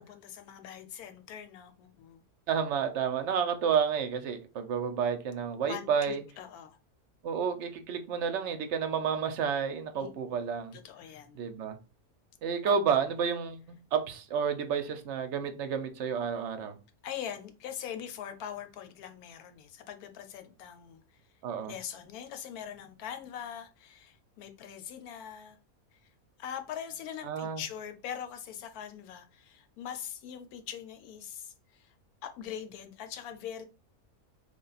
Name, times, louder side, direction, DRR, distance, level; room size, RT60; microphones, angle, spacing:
voice 1, 0.0-2.2 5.7-6.8 9.9-10.1 10.7-11.4 12.6-12.8 17.0-21.3 21.6-25.6 25.9-26.0 26.4-32.0 32.2-33.6, left 9 dB, 85° left, 1.1 m, -42 dB
voice 2, 2.5-6.2 7.2-10.8 11.4-11.8 12.4-16.7 21.4-21.7 27.2-27.6, right 7 dB, 65° right, 0.8 m, -30 dB
3.4 x 2.3 x 3.9 m
omnidirectional pair, 1.5 m